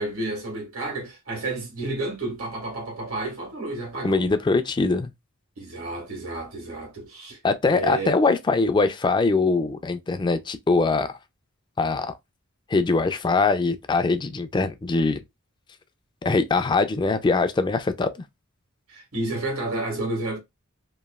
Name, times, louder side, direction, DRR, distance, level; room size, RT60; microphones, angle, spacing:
voice 1, 0.0-4.3 5.6-7.4 7.6-8.2 18.9-20.4, right 2 dB, 90° right, 1.5 m, -31 dB
voice 2, 4.0-5.1 7.4-11.1 11.8-12.1 12.7-15.2 16.2-18.1, left 3 dB, 20° left, 0.3 m, -22 dB
3.0 x 2.3 x 2.3 m
head